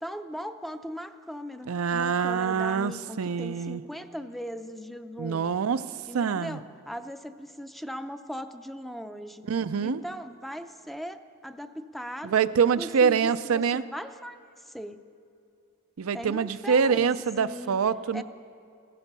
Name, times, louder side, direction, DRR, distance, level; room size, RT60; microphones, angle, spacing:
voice 1, 0.0-5.5 6.1-9.4 9.8-12.4 12.8-15.0 16.1-17.1 17.4-17.8 18.1-18.2, equal, ahead, 9 dB, 0.5 m, -39 dB
voice 2, 1.7-2.9 3.2-3.8 5.2-5.8 6.1-6.6 9.5-10.0 12.2-13.8 16.0-18.2, right 6 dB, 85° right, 12 dB, 0.5 m, -25 dB
15.5 x 12.5 x 6.8 m, 2.5 s
head